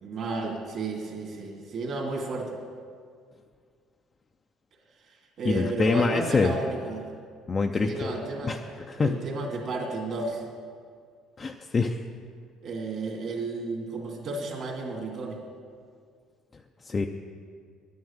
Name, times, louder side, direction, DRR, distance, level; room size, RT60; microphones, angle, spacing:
voice 1, 0.0-2.5 5.0-7.0 7.8-8.6 9.0-10.4 12.6-15.4, right 3 dB, 45° right, 1 dB, 2.4 m, -32 dB
voice 2, 5.4-6.5 7.5-8.1 8.4-8.6 8.9-9.2 11.4-12.0 16.8-17.1, left 4 dB, 25° left, 3 dB, 0.5 m, -25 dB
10.5 x 9.5 x 7.3 m, 2.1 s
cardioid pair, 145°, 0 cm